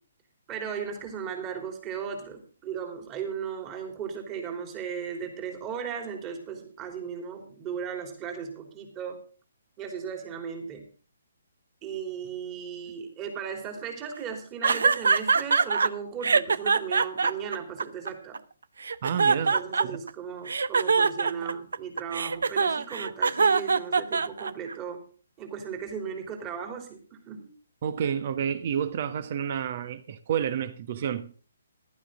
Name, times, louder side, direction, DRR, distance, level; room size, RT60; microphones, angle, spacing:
voice 1, 0.5-9.2 9.8-10.9 11.8-18.4 19.5-25.0 25.4-27.5, right 7 dB, 20° right, 3.3 m, -36 dB
sound 1, 14.6-15.9 16.2-18.4 18.8-20.1 20.5-24.7, right 5 dB, 75° right, 0.7 m, -23 dB
voice 2, 19.0-19.5 19.8-20.0 27.8-31.3, right 8 dB, 45° right, 1.4 m, -30 dB
15.0 x 12.0 x 3.8 m
hypercardioid pair, 150°, 0 cm